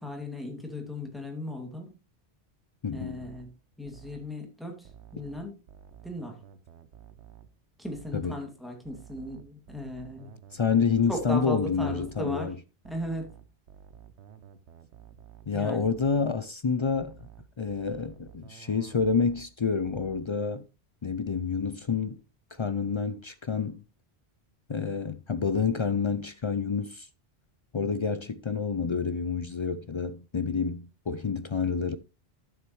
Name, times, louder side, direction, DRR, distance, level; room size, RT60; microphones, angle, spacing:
voice 1, 0.0-1.9 2.9-3.5 3.8-5.6 6.0-6.4 7.8-10.3 11.1-12.5 12.8-13.3 15.5-15.9, left 1 dB, ahead, 2.3 m, -37 dB
voice 2, 2.8-3.2 8.1-8.4 10.5-12.6 15.5-17.3 17.6-20.6 21.0-22.2 22.5-23.8 24.7-27.1 27.7-32.0, left 5 dB, 50° left, 0.3 m, -28 dB
sound 1, 2.9-4.4 4.8-7.6 7.8-8.4 8.8-12.4 12.8-15.6 15.8-16.4 16.8-19.6 19.8-20.4, right 9 dB, 80° right, 1.1 m, -52 dB
11.5 x 7.3 x 3.1 m
omnidirectional pair, 1.1 m